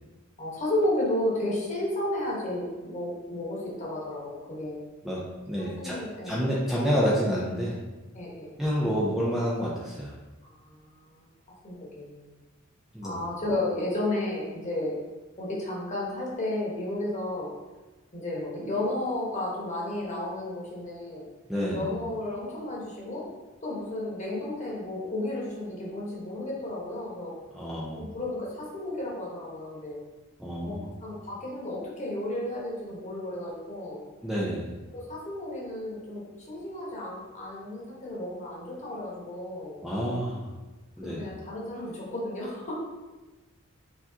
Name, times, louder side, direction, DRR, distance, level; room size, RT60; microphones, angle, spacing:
voice 1, 0.4-4.8 5.6-6.5 8.1-8.6 10.4-11.2 11.6-12.3 13.0-15.0 15.4-17.5 18.1-21.2 21.7-23.3 23.6-27.3 28.0-30.0 30.6-34.0 34.9-39.8 41.2-42.7, left 1 dB, 35° left, -5 dB, 1.3 m, -33 dB
voice 2, 5.0-7.8 8.6-10.1 12.9-13.2 21.5-21.9 27.5-28.0 30.4-30.9 34.2-34.7 39.8-40.5 41.0-41.3, equal, ahead, -7 dB, 0.6 m, -29 dB
4.7 x 3.9 x 2.8 m, 1.2 s
head